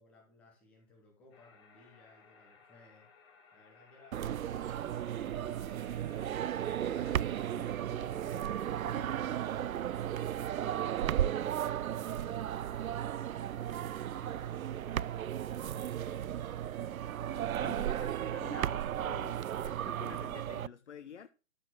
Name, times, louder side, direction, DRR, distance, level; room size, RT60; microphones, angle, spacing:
voice 1, 0.0-6.3 7.6-8.5 11.3-13.1 13.7-15.0 15.5-16.9, left 2 dB, 5° left, 0.8 m, -62 dB
sound 1, 1.3-20.1, left 5 dB, 20° left, 2.3 m, -61 dB
sound 2, 4.1-20.7, right 11 dB, 80° right, 0.5 m, -35 dB
voice 2, 6.8-8.4 8.8-9.7 17.5-21.3, left 7 dB, 55° left, 0.8 m, -50 dB
13.0 x 4.3 x 6.2 m
hypercardioid pair, 160°, 41 cm